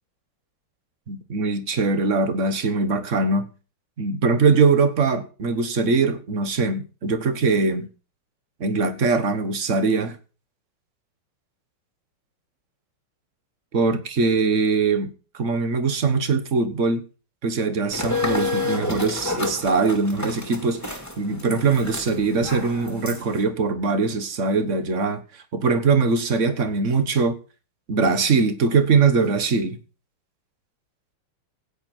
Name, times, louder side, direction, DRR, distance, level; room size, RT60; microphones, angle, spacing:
voice 1, 1.1-3.5 4.0-7.9 8.6-10.2 13.7-17.0 17.4-25.2 25.5-27.4 27.9-29.8, right 4 dB, 40° right, 1.4 m, -22 dB
sound 1, 17.9-23.4, left 2 dB, 10° left, 2.0 m, -30 dB
15.5 x 9.5 x 4.5 m
omnidirectional pair, 2.3 m